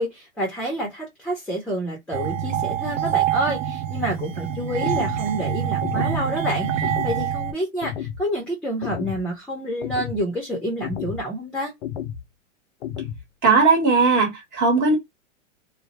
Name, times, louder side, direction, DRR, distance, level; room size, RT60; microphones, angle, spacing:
voice 1, 0.0-11.7, right 1 dB, 5° left, 0.7 m, -28 dB
sound 1, 2.1-7.5, right 9 dB, 70° right, 0.6 m, -25 dB
sound 2, 4.8-5.2 5.8-6.2 6.8-7.2 7.8-8.2 8.8-9.2 9.8-10.2 10.8-11.2 11.8-12.2 12.8-13.2, left 10 dB, 55° left, 0.6 m, -31 dB
voice 2, 13.4-15.0, right 4 dB, 30° right, 1.3 m, -18 dB
2.5 x 2.2 x 3.0 m
hypercardioid pair, 120°, 38 cm